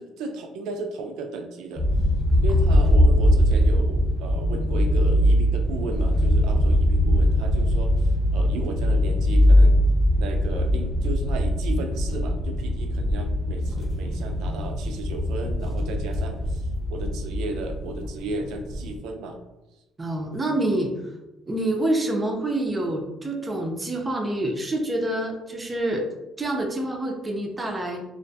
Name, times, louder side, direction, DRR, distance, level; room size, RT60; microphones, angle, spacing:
voice 1, 0.0-1.8 2.4-9.8 10.2-19.4, right 3 dB, 85° right, 5 dB, 0.4 m, -34 dB
sound 1, 1.8-19.0, equal, 20° left, 0.8 m, -21 dB
voice 2, 20.0-20.9 21.5-26.0 26.4-28.0, right 1 dB, 20° right, 1 dB, 0.4 m, -27 dB
2.4 x 2.1 x 2.6 m, 0.97 s
cardioid pair, 130°, 0 cm